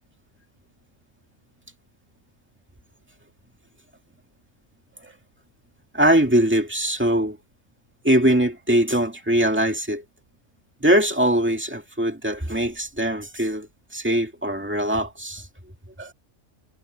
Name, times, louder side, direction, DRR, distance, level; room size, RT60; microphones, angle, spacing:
voice 1, 5.9-7.4 8.0-10.0 10.8-15.5 16.0-16.1, right 1 dB, 10° right, 2.2 m, -21 dB
omnidirectional pair, 1.5 m